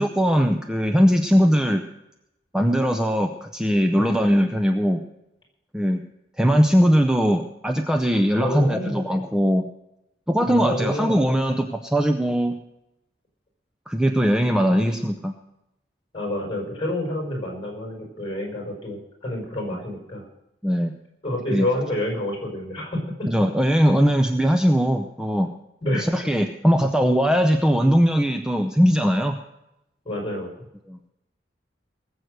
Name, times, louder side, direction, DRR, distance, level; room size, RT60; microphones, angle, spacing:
voice 1, 0.0-1.8 2.5-5.0 5.7-6.0 6.4-9.6 10.3-12.6 13.9-15.3 20.6-20.9 21.5-21.7 23.3-25.5 25.9-29.4 30.9-31.0, equal, 5° right, 5 dB, 0.6 m, -20 dB
voice 2, 4.0-4.3 8.4-9.0 10.4-11.1 16.1-20.2 21.2-23.3 25.8-26.1 30.1-30.5, left 1 dB, 30° left, 0 dB, 5.3 m, -28 dB
20.0 x 8.0 x 6.5 m, 0.88 s
head